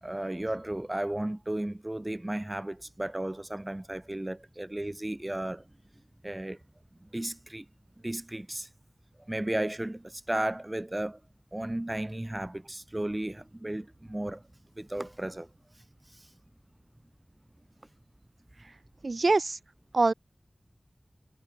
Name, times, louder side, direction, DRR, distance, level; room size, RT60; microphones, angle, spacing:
voice 1, 0.0-5.7 6.2-6.6 7.0-7.6 8.0-8.7 9.2-11.2 11.5-14.4 14.8-15.5 15.7-16.3, right 1 dB, 25° right, 3.2 m, -34 dB
voice 2, 19.0-19.6 19.9-20.1, right 3 dB, 75° right, 7.7 m, -24 dB
wide cardioid pair, 55°, 0 cm